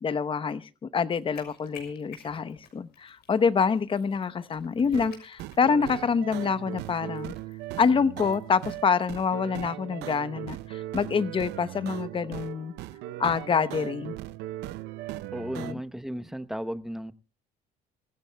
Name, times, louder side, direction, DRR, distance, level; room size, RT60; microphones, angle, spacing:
voice 1, 0.0-7.3 7.8-12.7 13.2-14.2 15.6-15.8, left 6 dB, 30° left, 0.9 m, -26 dB
sound 1, 1.2-8.8, left 7 dB, 70° left, 6.5 m, -55 dB
sound 2, 4.8-15.7, right 15 dB, 85° right, 0.6 m, -38 dB
voice 2, 15.3-17.1, equal, ahead, 0.9 m, -35 dB
25.5 x 15.5 x 2.3 m
cardioid pair, 110°, 17 cm